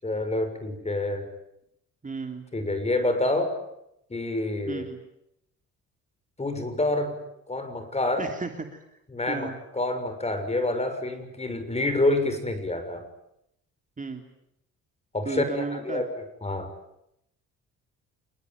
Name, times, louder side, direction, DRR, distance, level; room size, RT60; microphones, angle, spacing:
voice 1, 0.0-1.2 2.5-3.5 4.1-4.9 6.4-7.1 7.5-8.3 9.1-13.0 15.1-16.1 16.4-16.7, left 2 dB, 20° left, 9 dB, 6.6 m, -27 dB
voice 2, 2.0-2.4 4.7-5.0 8.2-8.8 9.3-9.6 14.0-14.2 15.2-16.0, right 4 dB, 25° right, 5 dB, 3.2 m, -33 dB
27.5 x 21.5 x 9.4 m, 0.78 s
cardioid pair, 90°, 30 cm